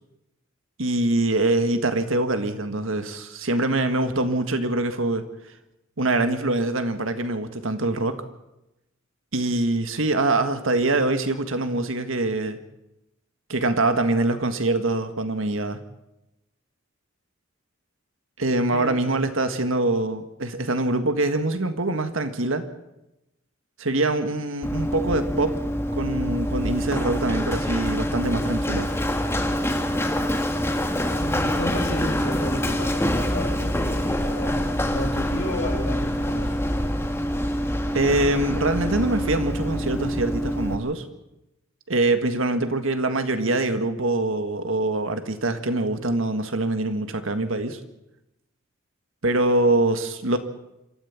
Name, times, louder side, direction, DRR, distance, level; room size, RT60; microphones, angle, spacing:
voice 1, 0.8-5.3 6.0-8.2 9.3-12.6 13.5-15.8 18.4-22.7 23.8-25.6 25.9-28.9 37.9-41.1 41.9-47.8 49.2-50.4, right 2 dB, 75° right, 9 dB, 1.7 m, -24 dB
Run, 24.6-40.8, equal, 10° left, 1.5 m, -25 dB
voice 2, 31.2-36.6, left 1 dB, 60° left, -2 dB, 7.3 m, -32 dB
27.0 x 13.0 x 7.2 m, 0.90 s
head